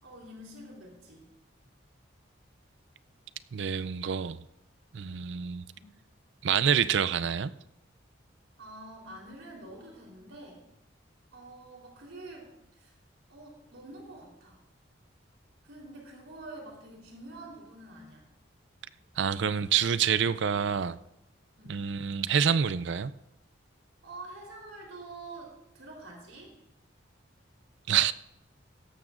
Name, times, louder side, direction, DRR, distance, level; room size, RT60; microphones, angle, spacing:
voice 1, 0.0-1.3 5.7-5.9 8.6-10.6 11.3-12.5 12.8-13.0 13.3-14.6 15.6-18.3 21.6-21.8 24.0-26.5, right 2 dB, 85° right, 3.8 m, -47 dB
voice 2, 3.5-4.4 4.9-5.6 6.4-7.5 19.2-21.0 21.7-23.1 27.9-28.1, right 8 dB, 65° right, 0.4 m, -27 dB
16.5 x 13.0 x 2.6 m
head